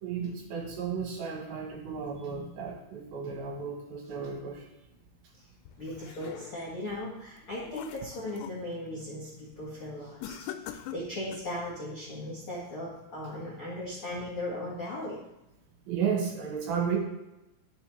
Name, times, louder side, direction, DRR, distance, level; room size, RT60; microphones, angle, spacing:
voice 1, 0.0-4.7 15.9-17.0, right 6 dB, 70° right, 0 dB, 2.6 m, -33 dB
sound 1, 5.7-6.8 7.3-8.6 9.0-9.3 10.2-11.6, left 11 dB, 90° left, 2.9 m, -43 dB
voice 2, 5.8-15.2, left 1 dB, 55° left, -7 dB, 1.4 m, -38 dB
12.0 x 6.1 x 3.2 m, 0.93 s
omnidirectional pair, 5.1 m